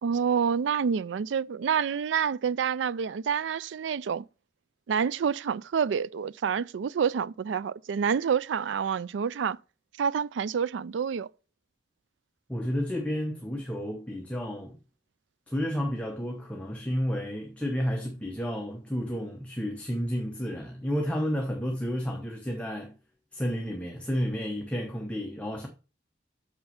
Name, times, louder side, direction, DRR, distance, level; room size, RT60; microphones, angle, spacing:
voice 1, 0.0-4.3 4.9-9.6 10.0-11.3, right 7 dB, 85° right, 0.4 m, -28 dB
voice 2, 12.5-14.8 15.5-22.9 23.3-25.7, equal, 5° left, 0.8 m, -31 dB
6.7 x 5.5 x 5.8 m
head